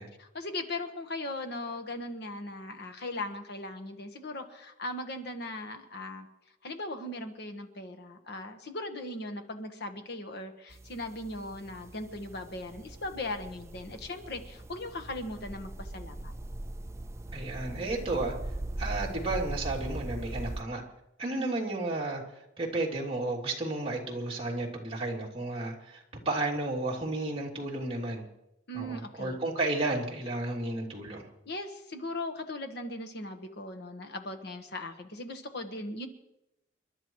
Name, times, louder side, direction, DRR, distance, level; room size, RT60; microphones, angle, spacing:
voice 1, 0.2-6.3 6.6-16.3 21.2-21.5 28.7-29.4 31.4-36.1, left 2 dB, 60° left, 6 dB, 1.3 m, -38 dB
sound 1, 10.7-20.6, right 1 dB, 15° right, 0.5 m, -40 dB
voice 2, 17.3-18.3 18.8-20.8 21.2-22.2 22.6-28.2 28.7-31.2, right 2 dB, 30° right, -3 dB, 2.8 m, -32 dB
29.5 x 12.0 x 3.1 m, 0.88 s
head